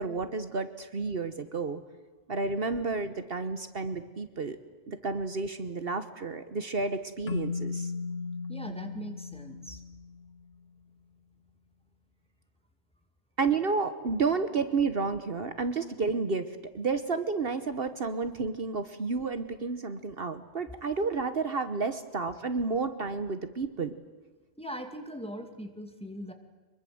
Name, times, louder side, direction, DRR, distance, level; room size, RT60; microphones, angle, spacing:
voice 1, 0.0-1.8 2.3-4.6 4.9-7.9 13.4-16.5 16.7-23.9, right 4 dB, 60° right, 10 dB, 1.3 m, -31 dB
Keyboard (musical), 7.3-10.5, left 4 dB, 65° left, 1.3 m, -36 dB
voice 2, 8.5-9.8 24.6-26.3, equal, 5° left, 5 dB, 2.4 m, -40 dB
24.5 x 22.5 x 7.8 m, 1.3 s
omnidirectional pair, 1.2 m